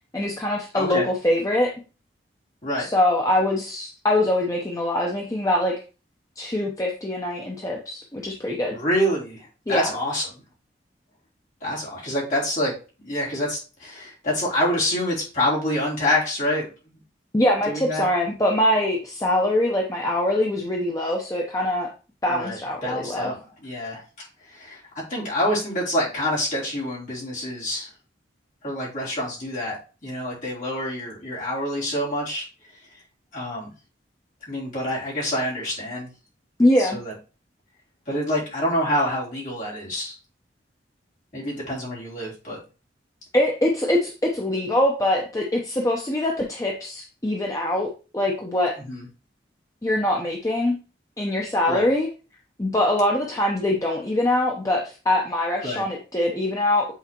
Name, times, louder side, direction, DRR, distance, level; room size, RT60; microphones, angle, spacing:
voice 1, 0.1-1.7 2.8-5.7 6.4-8.8 9.7-9.9 17.3-21.9 22.2-23.3 36.6-37.0 43.3-48.7 49.8-50.8 51.2-52.1 52.6-56.9, left 1 dB, 20° left, 0 dB, 0.7 m, -23 dB
voice 2, 0.7-1.1 2.6-2.9 8.7-10.4 11.6-12.7 13.0-17.0 17.7-18.0 22.3-24.3 24.5-24.8 25.1-27.9 28.6-32.5 33.3-33.7 34.5-36.1 36.8-37.1 38.1-40.2 41.3-42.6 48.8-49.0 51.7-51.9 55.6-55.8, left 1 dB, 45° left, -6 dB, 3.3 m, -27 dB
8.3 x 4.1 x 2.9 m, 0.34 s
head